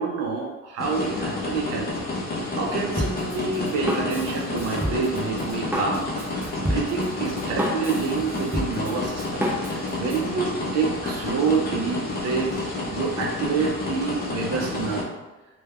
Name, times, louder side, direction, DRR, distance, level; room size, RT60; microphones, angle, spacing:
voice 1, 0.0-1.9 2.6-6.1 6.6-12.6 12.9-15.1, right 5 dB, 55° right, 0 dB, 0.5 m, -27 dB
sound 1, 0.8-15.0, left 2 dB, 30° left, 0.6 m, -30 dB
Drum kit, 3.0-10.3, equal, 5° right, 0.5 m, -31 dB
2.2 x 2.1 x 3.3 m, 1.2 s
cardioid pair, 90°, 30 cm